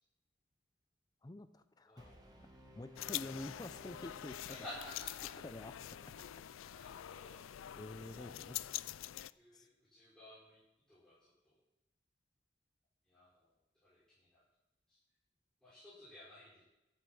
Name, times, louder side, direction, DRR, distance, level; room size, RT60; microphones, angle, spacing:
voice 1, 1.2-2.1 2.8-4.4 5.4-5.7 6.2-6.3 7.7-8.6 9.5-9.7, left 1 dB, 20° left, 11 dB, 0.5 m, -48 dB
voice 2, 1.9-2.2 4.5-5.3 6.7-7.4 7.9-8.4 9.3-10.6 10.9-11.6 13.0-13.5 13.8-14.4 14.9-15.0 15.6-16.6, left 1 dB, 5° left, -11 dB, 5.2 m, -54 dB
Brass instrument, 2.0-5.1, equal, 20° right, 1.8 m, -59 dB
sound 1, 3.0-9.3, left 13 dB, 90° left, 0.4 m, -45 dB
13.0 x 8.2 x 7.9 m, 0.96 s
head